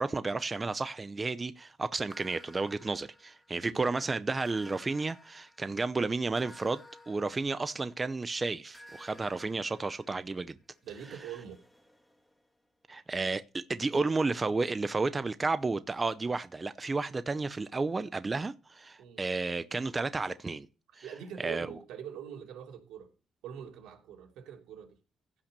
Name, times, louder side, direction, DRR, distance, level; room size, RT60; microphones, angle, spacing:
voice 1, 0.0-10.6 12.9-20.7 21.4-21.7, right 3 dB, 25° right, 0.7 m, -32 dB
sound 1, 2.1-3.8 4.4-8.1 8.7-12.5, left 1 dB, 5° left, 2.6 m, -56 dB
voice 2, 10.8-11.6 19.0-19.3 21.0-23.1 23.4-25.0, right 8 dB, 85° right, 3.3 m, -44 dB
16.0 x 5.9 x 6.8 m
cardioid pair, 90°, 0 cm